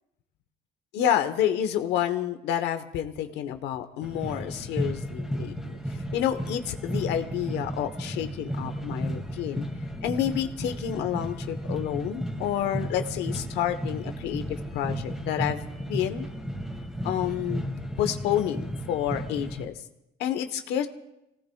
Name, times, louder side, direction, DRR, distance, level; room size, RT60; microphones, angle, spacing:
voice 1, 0.9-9.7 10.0-16.3 17.0-19.8 20.2-20.9, left 10 dB, 85° left, 8 dB, 1.1 m, -29 dB
sound 1, 4.0-19.7, equal, 5° right, 2.3 m, -34 dB
29.0 x 18.0 x 2.4 m, 0.89 s
cardioid pair, 110°, 17 cm